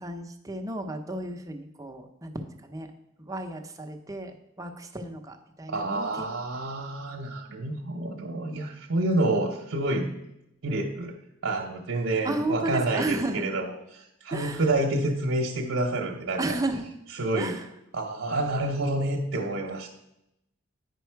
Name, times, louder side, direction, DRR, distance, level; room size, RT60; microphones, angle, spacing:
voice 1, 0.0-2.9 3.3-6.3 12.2-13.4 14.3-14.6 16.4-16.8 17.4-17.6, right 2 dB, 15° right, 4 dB, 0.7 m, -33 dB
voice 2, 5.7-10.1 10.6-11.1 11.4-16.6 17.1-17.6 17.9-19.9, right 2 dB, 70° right, -1 dB, 0.8 m, -28 dB
9.4 x 5.4 x 4.6 m, 0.84 s
head